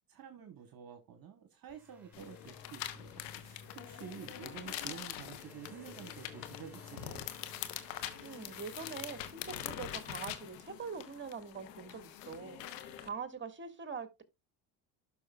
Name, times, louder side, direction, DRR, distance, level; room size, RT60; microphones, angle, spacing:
voice 1, 0.1-7.2, right 8 dB, 45° right, 1.4 m, -50 dB
sound 1, 1.7-10.0, left 2 dB, 5° right, 4.9 m, -57 dB
sound 2, 2.1-13.1, left 11 dB, 85° left, 1.1 m, -44 dB
voice 2, 8.2-14.2, right 5 dB, 25° right, 1.8 m, -44 dB
12.0 x 6.0 x 2.3 m
hypercardioid pair, 65°, 49 cm